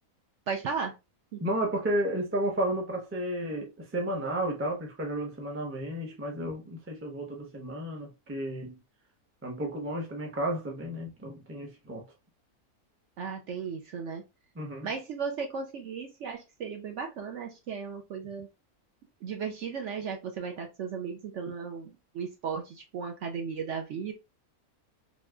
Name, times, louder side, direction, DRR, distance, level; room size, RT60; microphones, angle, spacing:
voice 1, 0.5-1.0 1.3-1.4 13.2-14.2 14.8-18.5 19.2-24.1, right 6 dB, 65° right, 0.8 m, -35 dB
voice 2, 1.4-8.8 9.4-12.0 14.6-14.9, right 1 dB, 15° right, 0.4 m, -32 dB
3.0 x 3.0 x 2.3 m
omnidirectional pair, 1.6 m